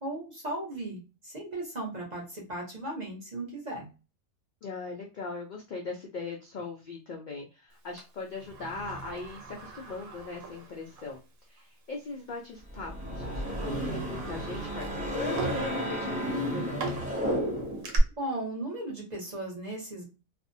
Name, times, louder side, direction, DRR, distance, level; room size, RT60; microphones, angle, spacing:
voice 1, 0.0-3.9 18.2-20.0, right 1 dB, 40° right, -2 dB, 0.8 m, -36 dB
voice 2, 4.6-11.2 11.5-14.9 15.1-16.9, left 4 dB, 80° left, -1 dB, 0.4 m, -40 dB
Sliding door, 8.0-11.2 11.6-11.7 12.6-12.8 13.3-18.0, right 3 dB, 90° right, 1.1 m, -41 dB
sound 1, 12.7-18.0, equal, 10° right, 0.5 m, -32 dB
2.4 x 2.0 x 2.6 m, 0.31 s
omnidirectional pair, 1.4 m